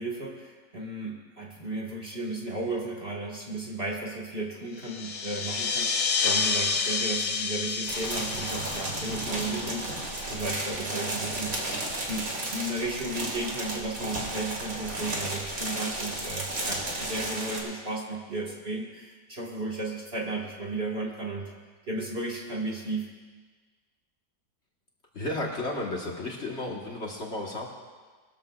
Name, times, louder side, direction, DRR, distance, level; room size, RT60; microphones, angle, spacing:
voice 1, 0.0-11.5 12.1-21.5 21.9-23.1, right 2 dB, 40° right, -3 dB, 1.9 m, -34 dB
sound 1, 4.8-10.9, left 5 dB, 85° left, 1.5 m, -30 dB
sound 2, 7.9-17.6, right 1 dB, 65° right, 2.7 m, -33 dB
voice 2, 25.1-27.7, left 2 dB, 50° left, -2 dB, 1.7 m, -33 dB
21.0 x 13.5 x 2.4 m, 1.4 s
omnidirectional pair, 1.6 m